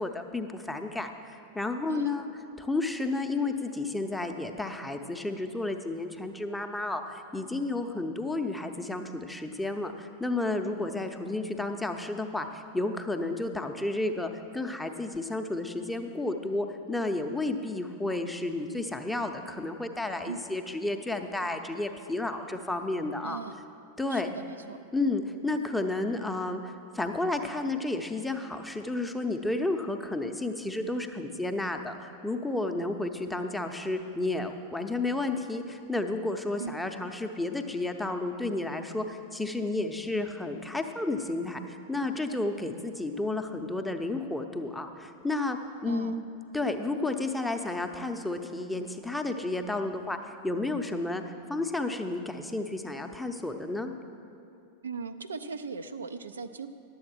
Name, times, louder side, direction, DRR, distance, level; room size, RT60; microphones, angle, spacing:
voice 1, 0.0-2.3 2.6-23.4 24.0-24.3 24.9-46.2 46.5-53.9, left 2 dB, 5° left, 5 dB, 0.6 m, -32 dB
voice 2, 23.2-23.5 24.1-24.8 36.6-36.8 45.9-46.2 54.8-56.7, right 5 dB, 70° right, 9 dB, 0.4 m, -38 dB
11.0 x 7.8 x 6.0 m, 2.6 s
figure-of-eight pair, 90°, 0 cm